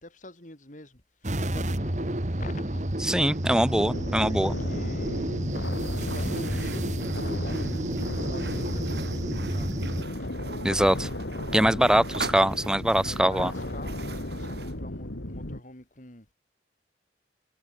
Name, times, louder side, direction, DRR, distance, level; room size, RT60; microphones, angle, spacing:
voice 1, 0.0-2.9 4.2-5.4 5.8-7.7 8.2-10.3 11.7-12.4 12.9-16.3, left 1 dB, 45° left, 4.9 m, -46 dB
sound 1, 1.2-10.0, right 1 dB, 45° right, 1.8 m, -30 dB
voice 2, 3.1-4.6 10.6-11.1 11.5-13.5, equal, 5° right, 1.0 m, -23 dB
sound 2, 3.7-15.6, left 1 dB, 90° left, 2.8 m, -35 dB
sound 3, 5.9-14.8, right 4 dB, 65° right, 3.2 m, -42 dB
head